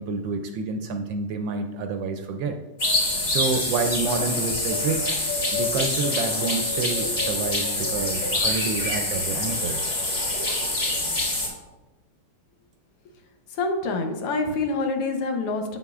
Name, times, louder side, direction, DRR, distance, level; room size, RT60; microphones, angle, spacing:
voice 1, 0.0-2.5 3.2-5.2 5.5-9.9, right 4 dB, 75° right, 5 dB, 1.1 m, -28 dB
sound 1, 2.8-11.5, left 2 dB, 45° left, 3.0 m, -25 dB
voice 2, 13.5-15.8, left 3 dB, 90° left, 4 dB, 1.8 m, -26 dB
8.0 x 7.7 x 2.4 m, 1.1 s
omnidirectional pair, 2.4 m